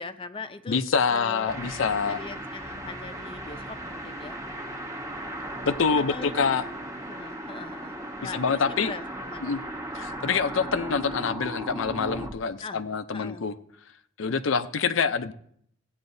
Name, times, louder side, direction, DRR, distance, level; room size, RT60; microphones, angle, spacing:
voice 1, 0.0-0.8 1.1-1.6 2.1-4.4 6.1-6.5 7.1-7.9 8.2-9.6 12.6-12.9 13.1-13.5, left 4 dB, 25° left, 0.5 m, -40 dB
voice 2, 0.7-2.2 5.6-6.6 8.3-8.9 9.4-9.6 9.9-13.5 14.2-15.3, left 5 dB, 70° left, 0.6 m, -26 dB
sound 1, 1.5-12.3, right 1 dB, 15° right, 0.9 m, -37 dB
16.0 x 8.6 x 2.7 m
head